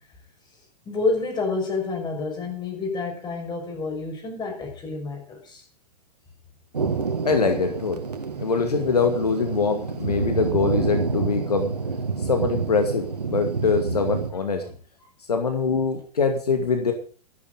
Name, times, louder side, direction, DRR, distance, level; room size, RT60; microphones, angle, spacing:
voice 1, 0.8-5.6 14.3-14.8, left 3 dB, 20° left, 2 dB, 6.5 m, -29 dB
Thunder, 6.7-14.3, right 4 dB, 75° right, 1.9 m, -28 dB
voice 2, 7.2-8.0 8.4-11.7 12.2-14.6 15.3-16.9, left 4 dB, 75° left, 5 dB, 2.3 m, -23 dB
14.0 x 12.0 x 5.2 m, 0.40 s
figure-of-eight pair, 100°, 20 cm